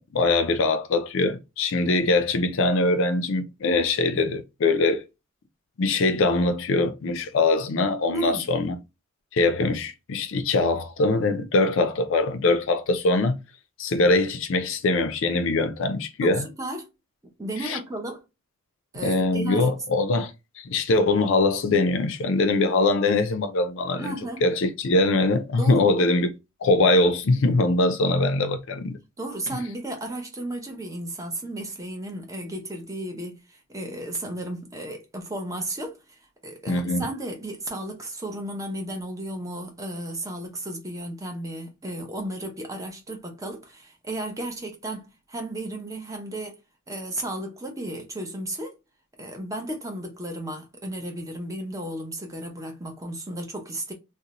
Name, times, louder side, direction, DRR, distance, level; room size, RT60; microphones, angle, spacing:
voice 1, 0.1-5.0 5.8-8.8 9.3-13.4 13.8-16.5 17.6-17.8 19.0-20.3 20.6-24.1 24.4-26.3 26.6-29.0 36.7-37.1, left 2 dB, 60° left, 0.4 m, -22 dB
voice 2, 8.1-8.5 16.2-16.9 17.2-18.2 18.9-19.7 23.9-24.4 25.6-25.9 29.2-46.6 46.9-48.8 49.2-53.9, right 1 dB, 15° right, 0.6 m, -34 dB
2.5 x 2.1 x 2.9 m
head